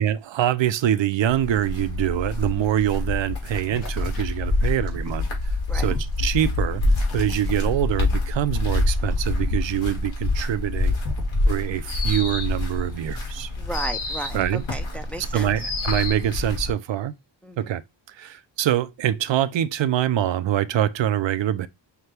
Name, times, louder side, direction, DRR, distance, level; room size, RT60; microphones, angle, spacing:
voice 1, 0.0-5.3 5.7-6.8 7.1-10.9 11.5-13.5 14.3-14.6 15.3-17.1 17.6-17.8 18.2-21.7, right 11 dB, 65° right, 0.5 m, -24 dB
sound 1, 1.3-16.7, left 2 dB, 70° left, 1.8 m, -26 dB
sound 2, 3.7-8.2 8.5-10.1 10.4-11.4, left 2 dB, 45° left, 2.7 m, -41 dB
sound 3, 11.9-12.7 13.7-14.5 15.6-16.3, left 3 dB, 90° left, 1.6 m, -31 dB
voice 2, 13.6-15.5 17.4-17.7, right 2 dB, 5° left, 0.4 m, -34 dB
5.8 x 2.2 x 3.2 m
wide cardioid pair, 95°, 48 cm